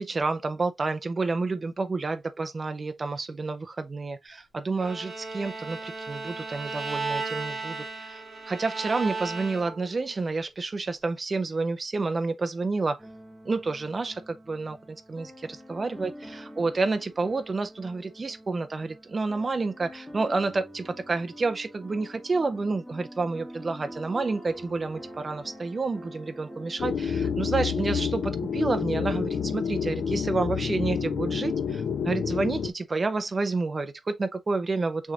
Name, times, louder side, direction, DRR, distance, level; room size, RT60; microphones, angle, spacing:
voice 1, 0.0-8.2 8.5-13.0 13.4-15.3 15.7-35.1, right 3 dB, 30° right, 0.5 m, -29 dB
Bowed string instrument, 4.8-9.9, right 3 dB, 65° right, 2.5 m, -35 dB
sound 1, 13.0-27.1, equal, ahead, 1.1 m, -46 dB
sound 2, 26.8-32.7, left 6 dB, 75° left, 0.5 m, -28 dB
6.3 x 3.3 x 2.4 m
wide cardioid pair, 175°, 0 cm